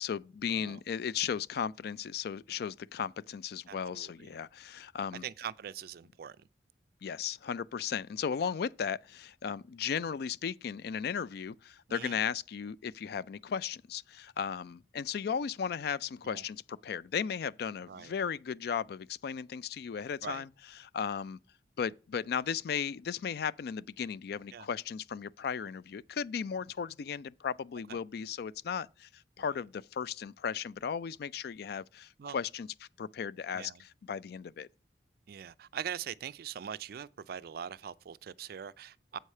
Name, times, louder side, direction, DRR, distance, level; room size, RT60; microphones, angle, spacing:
voice 1, 0.0-5.3 7.0-21.4 21.8-34.7, left 7 dB, 60° left, 0.3 m, -36 dB
voice 2, 3.7-4.1 5.2-6.4 11.9-12.2 16.2-16.4 17.9-18.1 20.2-20.4 24.5-24.7 27.9-28.0 32.2-32.4 33.5-33.8 35.3-39.2, right 8 dB, 55° right, 0.4 m, -42 dB
7.7 x 4.8 x 5.4 m
head